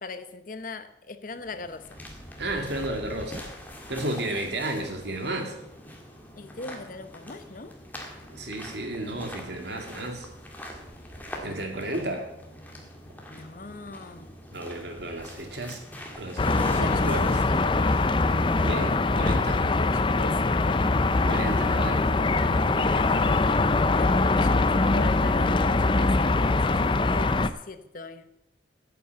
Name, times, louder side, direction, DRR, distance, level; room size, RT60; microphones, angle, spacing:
voice 1, 0.0-1.8 6.3-7.7 11.6-11.8 13.3-14.3 16.6-17.9 19.7-20.8 22.8-23.4 23.9-28.3, left 3 dB, 45° left, 11 dB, 0.8 m, -40 dB
sound 1, 1.3-19.5, left 1 dB, 10° left, 1.8 m, -44 dB
voice 2, 2.4-3.5 3.9-5.5 8.3-10.3 11.4-12.3 14.5-15.8 16.1-17.4 18.6-19.6 21.3-22.0, right 1 dB, 60° right, 3 dB, 2.2 m, -33 dB
sound 2, 16.4-27.5, left 3 dB, 25° left, 0.5 m, -23 dB
9.9 x 8.2 x 7.9 m, 0.84 s
head